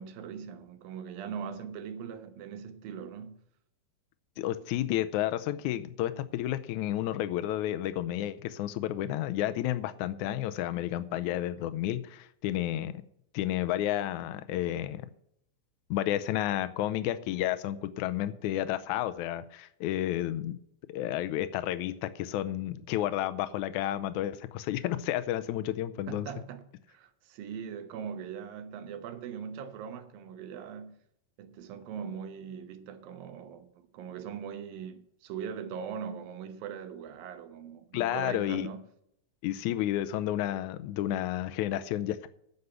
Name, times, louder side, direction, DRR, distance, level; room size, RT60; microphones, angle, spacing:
voice 1, 0.0-3.4 26.1-31.0 31.4-38.8, right 7 dB, 85° right, 2.8 m, -41 dB
voice 2, 4.4-13.0 13.3-15.1 15.9-20.6 20.9-26.3 37.9-38.7 39.4-42.3, left 13 dB, 80° left, 1.8 m, -31 dB
9.6 x 6.8 x 8.0 m
omnidirectional pair, 4.0 m